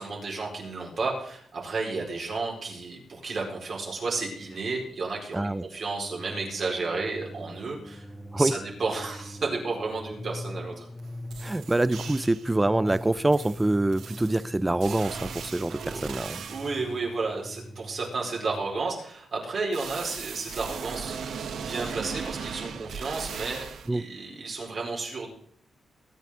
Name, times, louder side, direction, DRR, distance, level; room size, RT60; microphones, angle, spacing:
voice 1, 0.0-8.1 8.4-10.9 15.8-16.0 16.5-25.3, right 3 dB, 55° right, 4.7 m, -32 dB
voice 2, 5.3-5.6 8.3-8.6 11.4-16.5 23.9-24.0, right 2 dB, 15° right, 0.5 m, -25 dB
sound 1, 6.0-18.7, left 1 dB, 10° left, 1.1 m, -42 dB
sound 2, 11.0-11.1 11.3-12.5 12.9-16.9 19.7-23.9, right 6 dB, 80° right, 1.3 m, -38 dB
22.0 x 9.3 x 3.8 m
cardioid pair, 95°, 0 cm